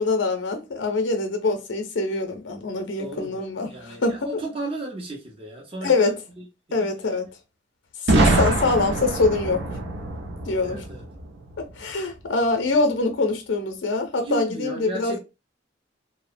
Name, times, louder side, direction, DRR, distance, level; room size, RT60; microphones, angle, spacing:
voice 1, 0.0-3.7 4.0-4.2 5.8-6.1 6.7-7.3 8.0-9.6 10.4-10.8 11.6-15.2, left 3 dB, 75° left, 0.6 m, -24 dB
voice 2, 3.0-6.9 10.6-11.1 14.2-15.2, right 2 dB, 30° right, 0.7 m, -35 dB
Boom, 8.1-11.9, right 2 dB, 65° right, 0.5 m, -24 dB
2.7 x 2.0 x 2.4 m
head